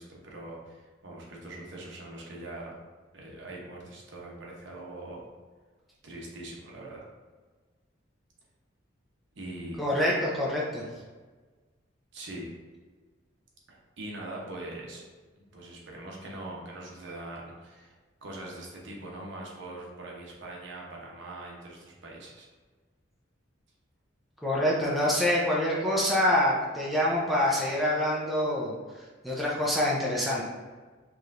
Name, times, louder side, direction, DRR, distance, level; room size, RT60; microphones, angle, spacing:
voice 1, 0.0-2.7 3.1-5.3 6.0-7.1 9.3-9.8 12.1-12.5 13.7-15.0 15.4-17.9 18.2-22.5, right 1 dB, 65° right, -2 dB, 0.9 m, -42 dB
voice 2, 9.8-10.8 24.4-28.7 29.2-30.4, left 1 dB, ahead, -5 dB, 0.6 m, -26 dB
4.7 x 3.1 x 2.6 m, 1.4 s
head